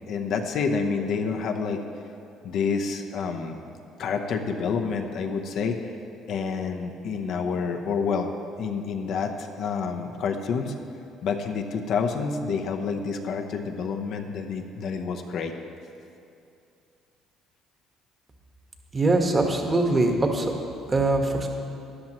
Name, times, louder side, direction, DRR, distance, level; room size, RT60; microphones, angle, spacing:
voice 1, 0.1-1.8 2.4-3.6 4.0-5.9 6.3-8.3 8.6-10.7 11.2-15.5, left 5 dB, 65° left, 4 dB, 0.8 m, -28 dB
voice 2, 18.9-20.5 20.9-21.5, right 2 dB, 30° right, 3 dB, 1.4 m, -22 dB
13.0 x 10.5 x 3.0 m, 2.6 s
supercardioid pair, 85°, 0 cm